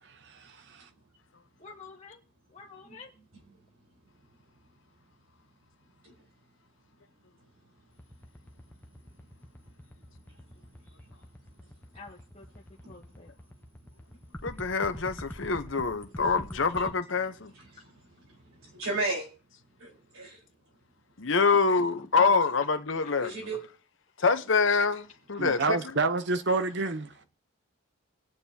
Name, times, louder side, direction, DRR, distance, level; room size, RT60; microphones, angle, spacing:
voice 1, 0.2-0.8 25.4-27.1, right 3 dB, 55° right, 0.7 m, -28 dB
voice 2, 1.6-2.2 2.5-3.1 11.9-13.3 16.2-16.8 22.0-22.3 23.0-23.1, left 3 dB, 30° left, 1.1 m, -45 dB
sound 1, 7.9-16.9, equal, 10° left, 0.8 m, -44 dB
voice 3, 9.9-10.3 10.6-11.1 12.8-13.0 16.8-16.9 17.5-19.3 19.8-20.4 23.2-23.6, right 2 dB, 80° right, 4.2 m, -37 dB
voice 4, 14.4-17.5 21.2-23.3 24.2-25.8, left 4 dB, 60° left, 0.9 m, -26 dB
20.0 x 9.1 x 2.8 m
head